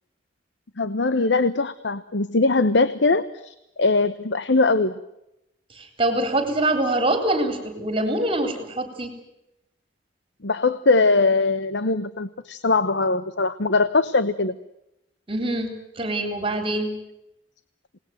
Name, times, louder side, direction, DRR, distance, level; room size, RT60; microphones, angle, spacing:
voice 1, 0.8-5.0 10.4-14.6, left 3 dB, 70° left, 13 dB, 1.0 m, -21 dB
voice 2, 5.7-9.1 15.3-16.9, right 1 dB, 30° right, 7 dB, 4.1 m, -24 dB
27.5 x 19.5 x 9.2 m, 0.88 s
head